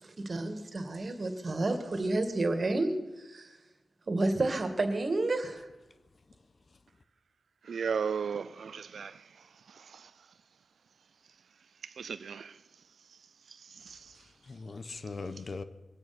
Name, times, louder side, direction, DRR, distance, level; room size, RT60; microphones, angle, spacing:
voice 1, 0.0-3.5 4.1-5.7, right 2 dB, 50° right, 2.2 m, -30 dB
voice 2, 7.6-9.3 9.7-10.1 11.8-12.6 13.5-14.1, right 6 dB, 80° right, 0.4 m, -36 dB
voice 3, 13.9-15.6, left 4 dB, 55° left, 1.1 m, -41 dB
22.5 x 9.3 x 6.2 m
cardioid pair, 55°, 0 cm